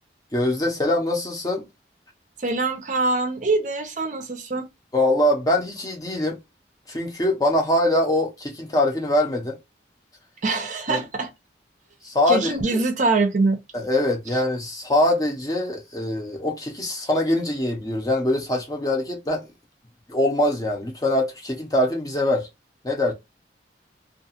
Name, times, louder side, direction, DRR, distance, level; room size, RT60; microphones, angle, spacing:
voice 1, 0.3-1.7 4.9-6.4 6.9-9.6 10.9-11.0 12.0-12.8 13.7-19.5 20.1-22.5 22.8-23.1, left 1 dB, 20° left, 0.6 m, -23 dB
voice 2, 2.4-4.7 10.4-11.3 12.3-13.6, right 3 dB, 45° right, 0.5 m, -23 dB
2.4 x 2.3 x 2.7 m
head